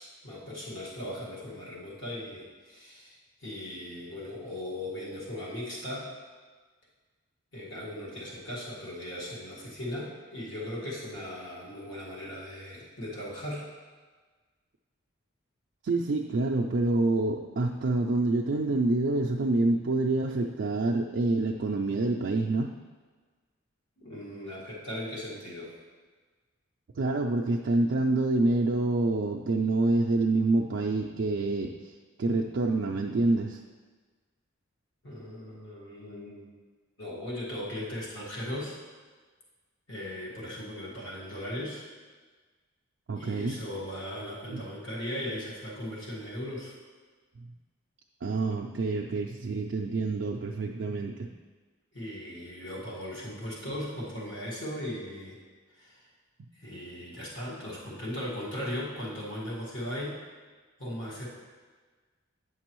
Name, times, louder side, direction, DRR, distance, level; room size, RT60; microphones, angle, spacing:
voice 1, 0.0-3.1 3.4-6.1 7.5-13.6 24.0-25.7 35.0-36.5 37.0-38.7 39.9-41.8 43.2-46.7 51.9-55.4 55.8-56.0 56.5-60.2 60.8-61.3, left 1 dB, 60° left, -6 dB, 1.6 m, -38 dB
voice 2, 15.8-22.7 27.0-33.6 43.1-43.6 44.5-44.6 48.2-51.3, right 2 dB, 55° right, -1 dB, 0.4 m, -27 dB
8.9 x 6.0 x 3.0 m, 1.4 s
head